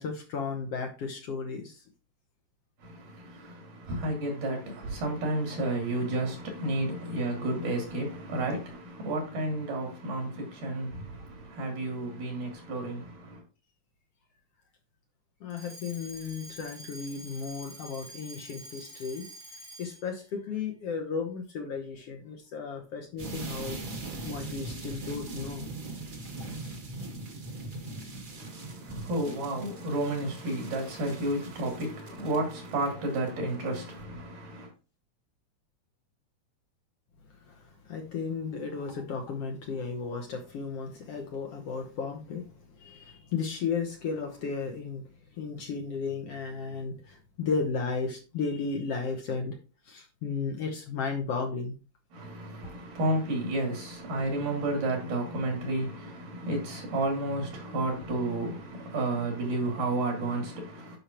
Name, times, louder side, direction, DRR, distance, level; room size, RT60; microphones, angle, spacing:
voice 1, 0.0-1.8 15.4-19.3 19.8-23.8 24.2-25.7 37.5-42.4 42.8-45.0 45.4-49.6 49.9-51.8, left 5 dB, 60° left, 1.7 m, -34 dB
voice 2, 2.8-13.4 28.3-34.7 52.1-61.0, right 1 dB, 85° right, 4.4 m, -32 dB
Alarm, 15.5-20.1, equal, 35° left, 0.8 m, -47 dB
sound 1, 23.2-33.3 33.7-33.9, right 2 dB, 40° right, 1.3 m, -41 dB
10.0 x 5.7 x 3.0 m
omnidirectional pair, 3.6 m